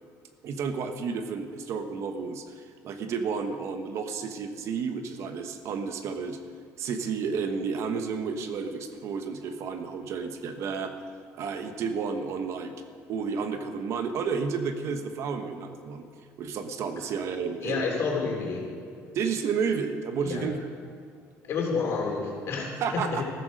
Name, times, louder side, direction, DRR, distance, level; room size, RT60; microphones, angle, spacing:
voice 1, 0.4-6.4 6.8-10.9 11.4-12.7 13.1-16.0 16.4-18.0 19.1-20.6 22.8-23.2, right 5 dB, 55° right, 7 dB, 1.1 m, -31 dB
voice 2, 17.6-18.6 20.2-20.5 21.4-22.7 22.9-23.2, left 5 dB, 50° left, -1 dB, 3.7 m, -29 dB
14.0 x 14.0 x 5.2 m, 2.3 s
cardioid pair, 130°, 6 cm